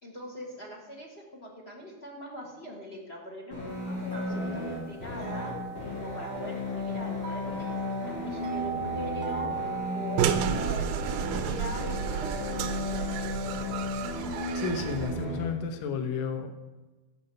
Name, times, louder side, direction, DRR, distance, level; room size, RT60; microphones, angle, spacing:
voice 1, 0.0-3.6 3.8-5.5 5.9-9.5 9.9-13.4, equal, 35° left, -1 dB, 1.0 m, -42 dB
sound 1, 3.5-15.5, left 2 dB, 50° left, 3.7 m, -34 dB
sound 2, 3.7-14.1, right 4 dB, 55° right, 1.4 m, -39 dB
sound 3, 10.2-15.3, right 9 dB, 85° right, 2.3 m, -32 dB
voice 2, 14.6-16.6, left 5 dB, 70° left, 6 dB, 2.1 m, -32 dB
14.0 x 4.9 x 6.8 m, 1.2 s
omnidirectional pair, 3.7 m